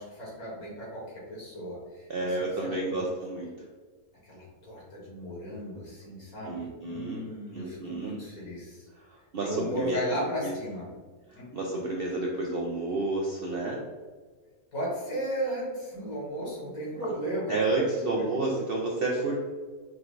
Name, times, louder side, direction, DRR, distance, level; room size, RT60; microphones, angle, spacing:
voice 1, 0.0-2.4 2.6-3.0 4.2-8.9 9.4-10.9 11.3-11.6 14.7-17.6 17.9-18.6, equal, 75° left, -5 dB, 2.1 m, -35 dB
voice 2, 2.1-3.5 6.5-7.3 7.5-8.2 9.0-10.0 10.4-10.5 11.3-13.8 17.5-19.4, right 2 dB, 65° right, -1 dB, 0.5 m, -30 dB
4.9 x 2.5 x 3.1 m, 1.4 s
omnidirectional pair, 1.5 m